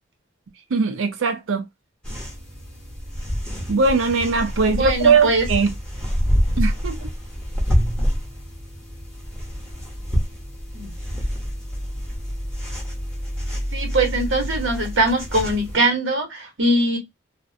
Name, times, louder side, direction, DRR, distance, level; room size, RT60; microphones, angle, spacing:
voice 1, 0.7-1.6 3.7-5.7 6.6-7.1, right 4 dB, 85° right, 0.4 m, -20 dB
sound 1, 2.0-15.8, equal, 5° left, 0.8 m, -27 dB
voice 2, 4.7-5.5 10.7-10.9 13.7-17.0, right 1 dB, 70° right, 0.9 m, -21 dB
2.5 x 2.0 x 2.5 m
head